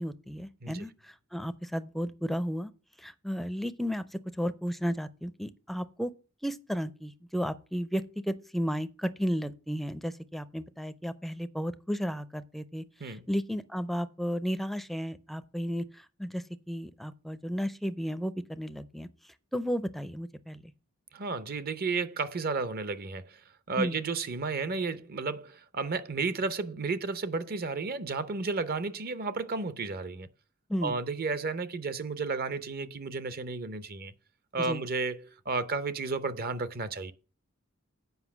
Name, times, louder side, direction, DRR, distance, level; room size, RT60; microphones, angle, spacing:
voice 1, 0.0-2.7 3.0-6.1 6.4-19.1 19.5-20.7 23.8-24.0 30.7-30.9 34.6-34.8, equal, ahead, 0.5 m, -33 dB
voice 2, 21.1-23.4 23.7-30.3 30.8-34.1 34.5-37.1, right 4 dB, 45° right, 0.7 m, -32 dB
8.1 x 5.1 x 7.2 m
head